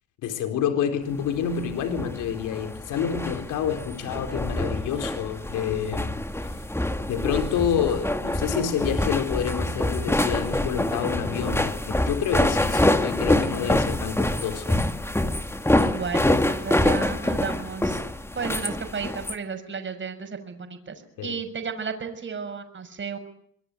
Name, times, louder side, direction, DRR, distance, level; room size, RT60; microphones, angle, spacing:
voice 1, 0.2-6.2 7.1-14.8 21.2-21.4, left 8 dB, 90° left, 4.4 m, -28 dB
sound 1, 1.4-19.3, left 1 dB, 10° left, 2.6 m, -26 dB
voice 2, 15.8-18.0 18.3-23.2, right 5 dB, 40° right, 6.4 m, -33 dB
25.5 x 22.0 x 9.2 m
cardioid pair, 90°, 30 cm